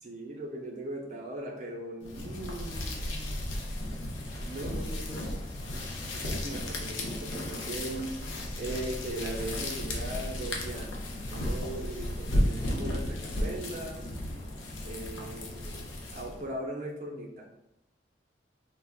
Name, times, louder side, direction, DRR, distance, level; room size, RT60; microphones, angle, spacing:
voice 1, 0.0-3.4 4.4-5.4 6.1-8.2 8.6-10.9 11.3-14.0 14.8-17.5, right 1 dB, 40° right, -1 dB, 0.5 m, -39 dB
sound 1, 2.0-16.5, left 1 dB, 90° left, 0.5 m, -34 dB
3.5 x 2.1 x 2.3 m, 0.85 s
head